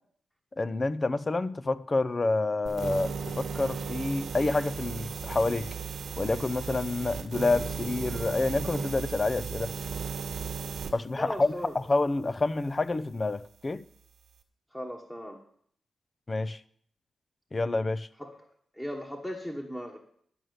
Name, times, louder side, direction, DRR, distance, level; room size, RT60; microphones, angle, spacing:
voice 1, 0.6-5.7 6.2-9.7 10.9-13.8 16.3-16.6 17.5-18.1, left 3 dB, 30° left, 0.5 m, -28 dB
sound 1, 2.7-10.9, right 6 dB, 70° right, 1.3 m, -35 dB
voice 2, 11.2-11.8 14.7-15.4 18.2-18.4 18.7-20.0, equal, 10° left, 1.3 m, -37 dB
11.0 x 6.4 x 7.9 m
wide cardioid pair, 110°, 0 cm